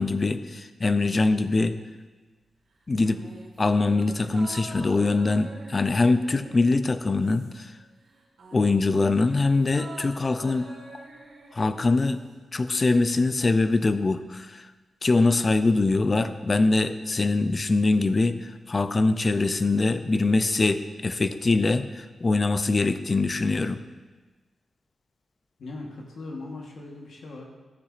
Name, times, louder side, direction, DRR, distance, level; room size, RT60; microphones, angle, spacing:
voice 1, 0.0-1.7 2.9-3.2 3.6-7.7 8.5-10.7 11.5-12.2 12.5-14.7 15.0-18.4 18.7-23.8, left 3 dB, 25° left, 11 dB, 0.3 m, -23 dB
sound 1, 3.0-7.8 8.1-12.4 12.7-12.8, right 3 dB, 85° right, 1.8 m, -46 dB
voice 2, 25.6-27.5, left 2 dB, 70° left, 0 dB, 1.1 m, -39 dB
13.5 x 6.7 x 2.4 m, 1.3 s
wide cardioid pair, 165°, 0 cm